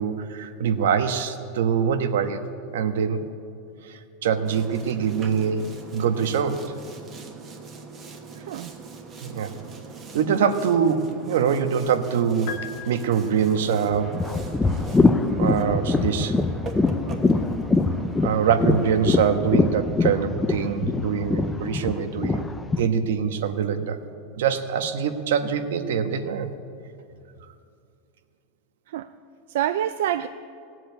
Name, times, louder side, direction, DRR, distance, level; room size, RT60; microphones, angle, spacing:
voice 1, 0.0-2.4 2.7-3.3 3.8-5.6 5.9-6.6 9.2-9.5 10.1-12.6 12.9-14.1 15.4-16.3 18.2-22.5 22.8-24.0 24.4-26.5, right 7 dB, 85° right, 8 dB, 1.2 m, -24 dB
Boat Water vehicle, 4.4-19.3, right 4 dB, 20° right, 1.2 m, -42 dB
voice 2, 8.4-8.7 28.9-29.1 29.5-30.3, right 11 dB, 65° right, 11 dB, 0.4 m, -26 dB
sound 1, 12.5-13.8, left 8 dB, 50° left, 0.8 m, -38 dB
sound 2, 13.9-22.8, left 3 dB, 5° left, 0.5 m, -23 dB
18.0 x 7.8 x 9.4 m, 2.5 s
supercardioid pair, 180°, 0 cm